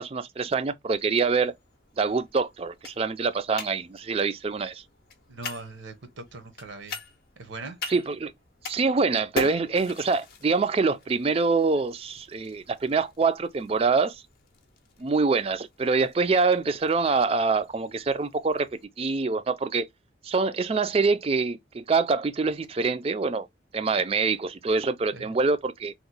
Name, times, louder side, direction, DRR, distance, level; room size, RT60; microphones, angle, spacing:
voice 1, 0.0-1.5 2.0-4.8 7.9-8.3 8.6-14.2 15.0-18.7 19.0-19.9 20.2-23.5 23.7-25.9, right 4 dB, 30° right, 0.3 m, -25 dB
sound 1, 1.0-18.8, left 3 dB, 50° left, 0.6 m, -43 dB
voice 2, 5.3-7.0 7.4-7.8 25.1-25.3, right 3 dB, 75° right, 0.8 m, -40 dB
3.0 x 2.1 x 3.9 m
head